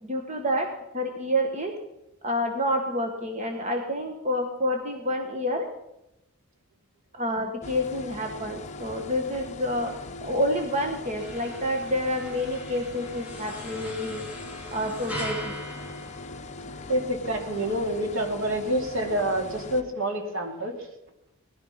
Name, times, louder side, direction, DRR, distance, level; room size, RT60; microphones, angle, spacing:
voice 1, 0.0-0.7 0.9-1.7 2.2-5.7 7.1-14.2 14.7-15.6, equal, 30° right, 4 dB, 1.5 m, -28 dB
sound 1, 7.6-19.8, left 3 dB, 30° left, 1.1 m, -40 dB
sound 2, 11.2-17.0, equal, 5° right, 2.2 m, -40 dB
voice 2, 16.9-20.9, right 1 dB, 65° right, 3 dB, 2.8 m, -27 dB
19.5 x 12.5 x 5.8 m, 0.90 s
head